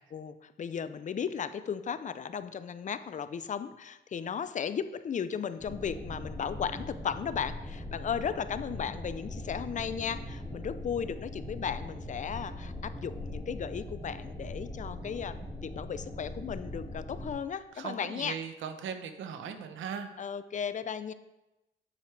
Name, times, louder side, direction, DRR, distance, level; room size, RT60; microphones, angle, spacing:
voice 1, 0.1-15.4 15.6-18.4 20.2-21.1, left 7 dB, 40° left, 13 dB, 0.5 m, -35 dB
sound 1, 5.6-17.3, left 1 dB, 10° left, 2.2 m, -41 dB
voice 2, 17.8-20.1, right 7 dB, 75° right, 7 dB, 0.9 m, -38 dB
8.5 x 7.6 x 3.4 m, 0.97 s
cardioid pair, 90°, 20 cm